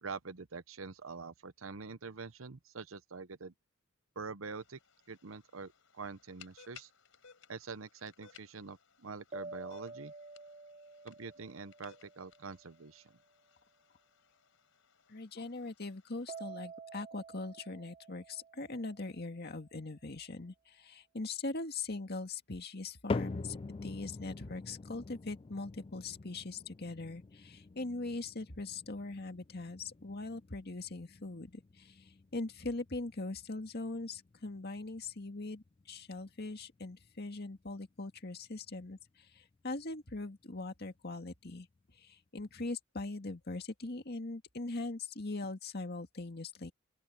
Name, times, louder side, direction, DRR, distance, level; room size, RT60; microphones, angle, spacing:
voice 1, 0.0-3.5 4.2-4.8 5.1-6.9 7.5-10.1 11.0-13.1, right 4 dB, 80° right, 0.9 m, -45 dB
sound 1, 4.5-16.4, left 8 dB, 70° left, 5.5 m, -62 dB
sound 2, 9.3-12.8 16.3-19.3, right 4 dB, 30° right, 0.5 m, -49 dB
voice 2, 15.1-41.7 41.9-46.7, left 3 dB, 55° left, 1.9 m, -41 dB
sound 3, 23.1-39.4 39.7-40.3 40.9-41.0 41.8-41.9, left 3 dB, 25° left, 0.4 m, -46 dB
open air
head